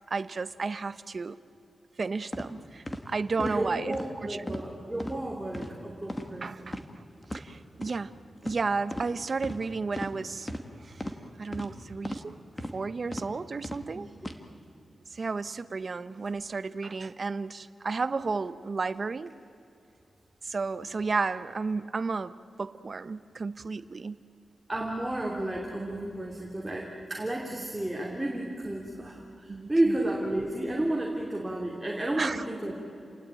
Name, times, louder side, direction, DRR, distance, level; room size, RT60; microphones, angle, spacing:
voice 1, 0.1-1.4 2.0-4.0 4.2-4.4 6.4-6.8 7.3-8.1 8.4-10.5 10.8-11.1 11.4-12.4 12.7-14.1 15.1-19.3 20.4-24.2 29.5-30.0 32.2-32.4, right 4 dB, 40° right, 14 dB, 0.8 m, -32 dB
sound 1, 2.3-2.5 2.9-3.0 3.4-3.6 3.9-4.1 4.5-4.7 5.0-5.1 5.5-5.7 6.1-6.3 6.7-6.8 7.2-7.4 7.8-7.9 8.4-8.6 8.9-9.1 9.4-9.6 10.0-10.1 10.5-10.6 11.0-11.1 11.5-11.7 12.0-12.2 12.6-12.8 13.1-13.3 13.6-13.8 14.2-14.3, left 1 dB, 15° left, 1.8 m, -36 dB
voice 2, 3.4-6.8 13.9-14.1 24.7-32.7, right 1 dB, 10° right, -2 dB, 2.8 m, -32 dB
30.0 x 19.0 x 9.1 m, 2.7 s
wide cardioid pair, 145°, 0 cm